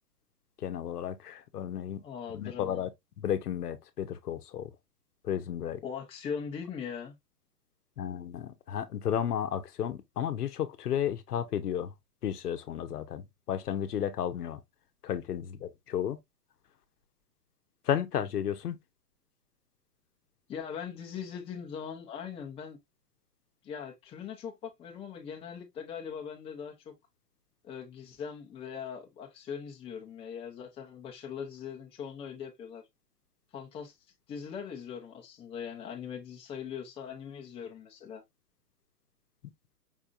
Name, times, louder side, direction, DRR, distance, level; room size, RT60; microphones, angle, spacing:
voice 1, 0.6-2.0 2.3-2.9 3.2-4.7 5.2-5.8 8.0-11.9 12.2-14.6 15.0-16.2 17.9-18.8, left 9 dB, 70° left, 0.9 m, -33 dB
voice 2, 2.0-2.8 5.8-7.1 20.5-22.8 23.6-26.9 27.6-32.8 33.5-34.0 34.3-38.2, left 7 dB, 10° left, 0.8 m, -40 dB
5.4 x 3.4 x 2.5 m
hypercardioid pair, 125°, 48 cm